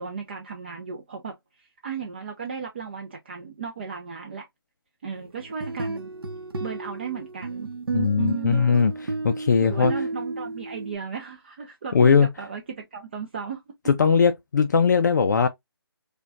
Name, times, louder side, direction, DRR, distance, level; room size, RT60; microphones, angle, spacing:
voice 1, 0.0-4.5 5.0-6.1 6.6-7.7 8.2-8.8 9.6-13.6, right 6 dB, 25° right, 0.4 m, -35 dB
sound 1, 5.4-11.0, right 3 dB, 70° right, 0.7 m, -32 dB
voice 2, 7.9-8.9 9.2-9.9 11.9-12.3 13.9-15.5, left 5 dB, 50° left, 0.3 m, -19 dB
5.0 x 2.2 x 2.3 m
figure-of-eight pair, 160°, 13 cm